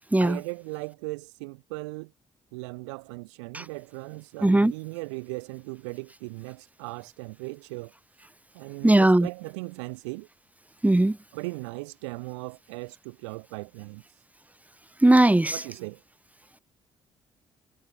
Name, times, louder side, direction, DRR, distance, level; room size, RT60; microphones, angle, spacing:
voice 1, 0.2-2.1 2.5-7.9 8.5-10.3 11.3-14.0 15.5-16.0, right 26 dB, 80° right, 2.3 m, -38 dB
voice 2, 4.4-4.7 8.8-9.3 10.8-11.2 15.0-15.6, right 1 dB, 10° right, 0.7 m, -18 dB
hypercardioid pair, 45°, 15 cm